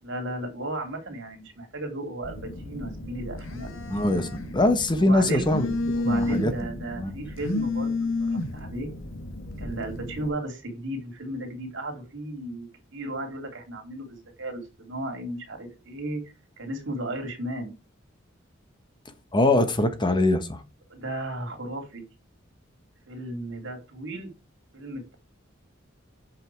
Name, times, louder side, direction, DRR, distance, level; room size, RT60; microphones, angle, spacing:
voice 1, 0.0-3.7 4.0-4.5 5.0-5.5 5.9-7.9 8.3-8.9 9.6-16.2 16.6-17.7 20.9-22.0 23.1-24.3 24.7-25.2, right 1 dB, 65° right, 2.9 m, -35 dB
Telephone, 2.2-10.3, left 2 dB, 75° left, 1.5 m, -32 dB
voice 2, 3.9-5.7 6.0-6.5 7.0-7.2 19.3-20.6, left 2 dB, 25° left, 1.1 m, -22 dB
8.4 x 5.5 x 4.7 m
head